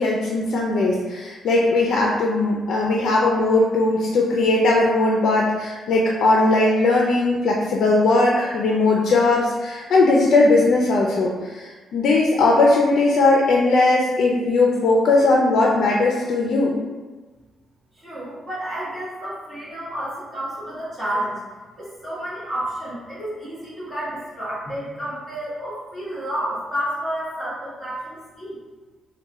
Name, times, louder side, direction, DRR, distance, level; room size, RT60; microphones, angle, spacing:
voice 1, 0.0-16.7, left 2 dB, 65° left, -2 dB, 0.4 m, -19 dB
voice 2, 18.0-21.4 21.8-28.6, right 1 dB, 10° right, -11 dB, 1.5 m, -30 dB
3.5 x 2.1 x 4.0 m, 1.3 s
cardioid pair, 145°, 0 cm